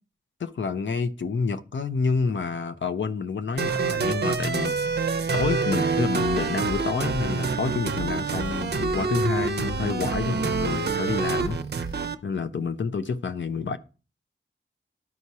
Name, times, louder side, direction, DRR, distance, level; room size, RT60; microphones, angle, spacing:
voice 1, 0.4-4.8 5.3-11.6 12.2-13.8, left 5 dB, 65° left, 0.7 m, -28 dB
sound 1, 3.6-12.1, right 4 dB, 55° right, 0.6 m, -26 dB
12.0 x 4.7 x 2.8 m
wide cardioid pair, 85°, 20 cm